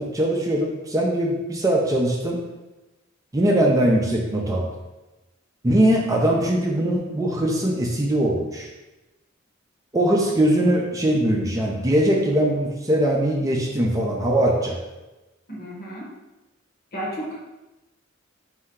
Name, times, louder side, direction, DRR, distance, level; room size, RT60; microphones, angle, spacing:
voice 1, 0.0-2.4 3.3-4.7 5.6-8.7 9.9-14.8, right 1 dB, 15° right, -1 dB, 0.4 m, -21 dB
voice 2, 15.5-16.1 16.9-17.4, equal, 50° left, -3 dB, 1.1 m, -32 dB
4.3 x 2.7 x 3.6 m, 1.1 s
head